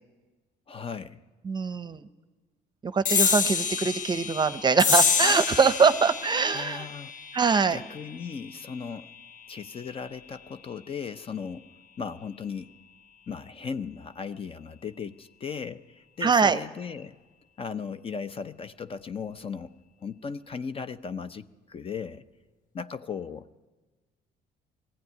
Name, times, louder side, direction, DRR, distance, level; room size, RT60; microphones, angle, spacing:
voice 1, 0.7-1.2 6.5-7.1 7.7-9.1 9.5-11.7 12.0-12.7 13.3-17.2 17.6-19.7 20.0-22.2 22.7-23.6, left 6 dB, 35° left, 12 dB, 0.6 m, -37 dB
voice 2, 1.4-2.1 2.8-6.9 7.3-7.8 16.2-16.6, right 5 dB, 25° right, 13 dB, 0.7 m, -23 dB
sound 1, 3.0-9.9, left 5 dB, 50° left, 1.1 m, -28 dB
20.0 x 15.5 x 9.4 m, 1.3 s
cardioid pair, 110°, 17 cm